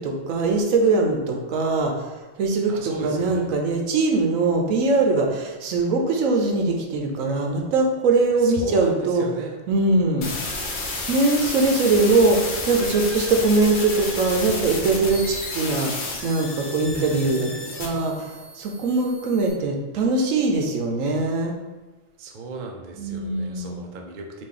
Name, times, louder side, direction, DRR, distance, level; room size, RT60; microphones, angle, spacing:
voice 1, 0.0-9.2 9.7-10.4 11.1-17.5 17.8-21.5 23.0-23.9, right 3 dB, 80° right, 2 dB, 1.1 m, -22 dB
voice 2, 2.7-3.5 8.4-9.5 11.8-12.0 16.8-17.9 22.2-24.5, right 3 dB, 55° right, 1 dB, 0.5 m, -36 dB
sound 1, 10.2-19.5, left 3 dB, 50° left, 0.7 m, -31 dB
4.2 x 2.8 x 3.7 m, 1.2 s
omnidirectional pair, 1.4 m